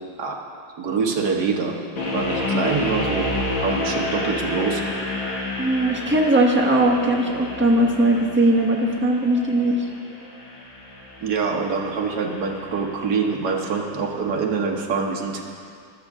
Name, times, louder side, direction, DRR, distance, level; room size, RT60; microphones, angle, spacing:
voice 1, 0.8-1.7 2.0-3.3 3.6-4.8 11.2-15.4, right 5 dB, 60° right, 0 dB, 1.6 m, -25 dB
sound 1, 2.0-13.0, left 2 dB, 80° left, 2.5 m, -30 dB
voice 2, 5.6-9.8, right 1 dB, 10° right, -2 dB, 0.9 m, -19 dB
14.5 x 12.0 x 3.6 m, 2.2 s
omnidirectional pair, 2.1 m